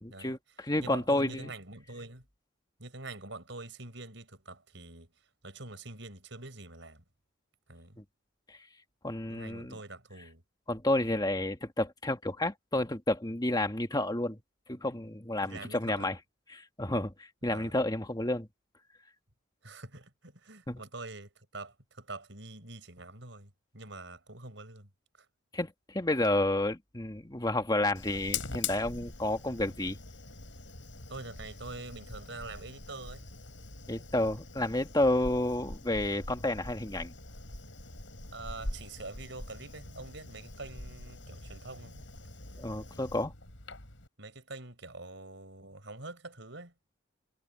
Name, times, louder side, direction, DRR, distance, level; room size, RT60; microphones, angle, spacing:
voice 1, 0.0-1.5 8.5-8.6 9.0-9.8 10.7-14.4 14.7-16.2 16.5-18.5 20.7-20.8 25.5-30.0 33.9-37.1 42.6-43.3, left 1 dB, 20° left, 1.8 m, -30 dB
voice 2, 0.8-2.3 2.8-5.1 5.4-7.0 7.7-8.0 9.3-10.4 15.4-16.2 17.5-17.7 19.6-24.9 25.2-25.3 31.1-33.3 38.3-42.0 44.2-46.7, right 2 dB, 60° right, 7.0 m, -45 dB
Fire, 27.9-44.1, left 3 dB, 65° left, 6.3 m, -43 dB
head